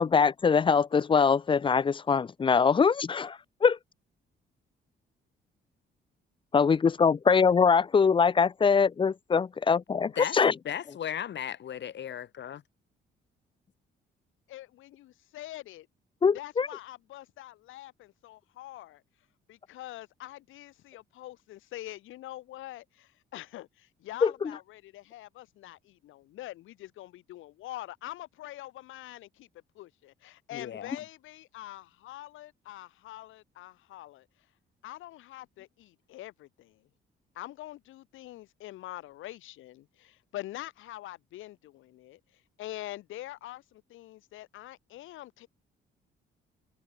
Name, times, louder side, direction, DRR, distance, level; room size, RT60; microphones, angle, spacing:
voice 1, 0.0-3.8 6.5-10.5 16.2-16.7 24.2-24.6, left 5 dB, 25° left, 0.4 m, -23 dB
voice 2, 10.6-12.6 30.5-31.0, left 9 dB, 65° left, 6.4 m, -36 dB
voice 3, 14.5-15.9 16.3-19.0 19.5-29.5 29.7-34.2 34.8-36.8 37.3-42.2 42.6-45.5, left 15 dB, 90° left, 3.0 m, -44 dB
cardioid pair, 90°, 20 cm